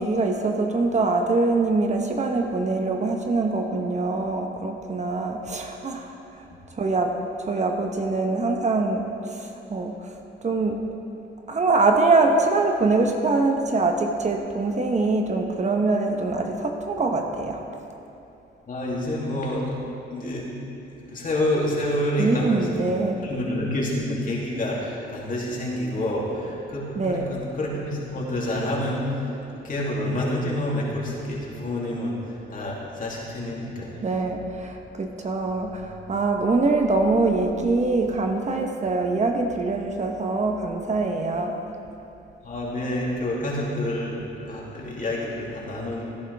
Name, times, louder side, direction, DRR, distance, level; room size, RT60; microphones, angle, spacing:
voice 1, 0.0-10.2 10.4-10.9 11.5-17.6 22.2-23.2 27.0-27.3 34.0-41.6, right 3 dB, 35° right, 3 dB, 1.0 m, -24 dB
voice 2, 18.7-19.8 20.1-20.4 20.9-22.9 23.2-29.1 29.5-32.2 32.5-34.0 42.4-46.0, left 1 dB, 45° left, -4 dB, 2.9 m, -28 dB
16.5 x 10.5 x 3.5 m, 2.9 s
cardioid pair, 90°, 20 cm